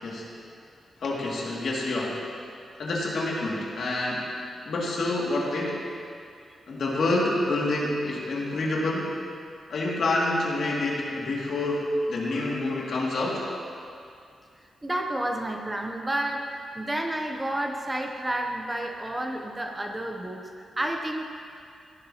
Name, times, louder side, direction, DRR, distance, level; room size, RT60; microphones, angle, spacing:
voice 1, 1.0-2.2 2.8-4.3 4.6-5.8 6.7-9.1 9.7-13.4, left 2 dB, 60° left, -4 dB, 2.2 m, -27 dB
voice 2, 14.8-21.2, right 1 dB, 15° right, 3 dB, 0.7 m, -30 dB
15.5 x 11.0 x 2.9 m, 2.4 s
wide cardioid pair, 145°, 0 cm